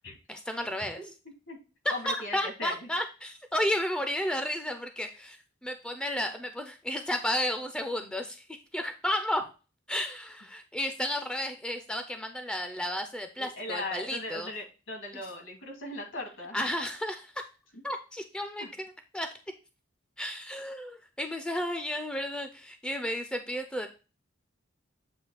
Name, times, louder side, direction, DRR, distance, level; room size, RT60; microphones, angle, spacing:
voice 1, 0.3-1.0 2.1-8.5 8.7-9.5 9.9-14.5 15.1-15.2 16.5-17.3 17.8-19.3 20.2-23.9, equal, 5° left, 6 dB, 0.6 m, -33 dB
voice 2, 1.9-2.8 13.4-16.6 18.6-18.7, left 2 dB, 75° left, 1 dB, 2.6 m, -38 dB
8.0 x 2.7 x 5.6 m, 0.32 s
head